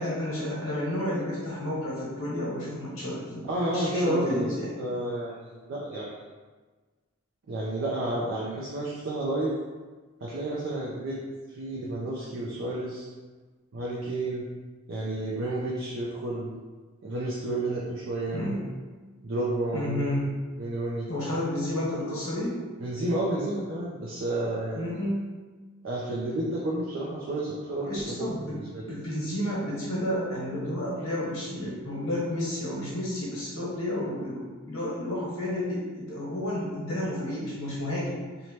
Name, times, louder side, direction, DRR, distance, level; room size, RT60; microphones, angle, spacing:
voice 1, 0.0-4.8 18.3-18.6 19.7-20.3 21.1-22.6 24.7-25.2 27.8-28.6 28.9-38.2, left 1 dB, 80° left, -6 dB, 1.0 m, -31 dB
voice 2, 3.4-6.2 7.5-9.5 10.2-11.2 11.5-13.1 13.7-14.4 14.9-16.5 17.0-18.4 19.2-20.1 20.6-21.1 22.8-25.0 25.8-29.0, right 1 dB, 70° right, -5 dB, 0.4 m, -31 dB
2.7 x 2.1 x 3.1 m, 1.3 s
head